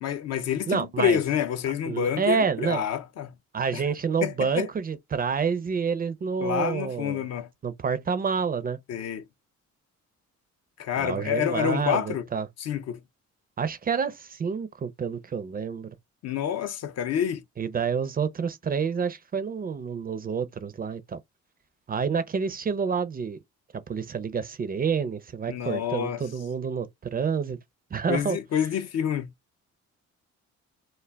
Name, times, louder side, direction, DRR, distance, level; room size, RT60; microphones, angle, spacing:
voice 1, 0.0-3.3 3.7-3.9 4.2-4.7 6.4-7.5 8.9-9.2 10.8-12.3 12.6-13.0 16.2-17.4 25.5-26.2 28.1-29.3, left 9 dB, 55° left, 0.5 m, -28 dB
voice 2, 0.7-1.2 1.9-2.8 3.5-7.3 7.6-8.8 11.0-12.5 13.6-15.9 17.6-21.2 21.9-23.4 23.9-27.6 27.9-28.4, right 6 dB, 30° right, 0.4 m, -28 dB
2.2 x 2.1 x 3.3 m
cardioid pair, 90°, 30 cm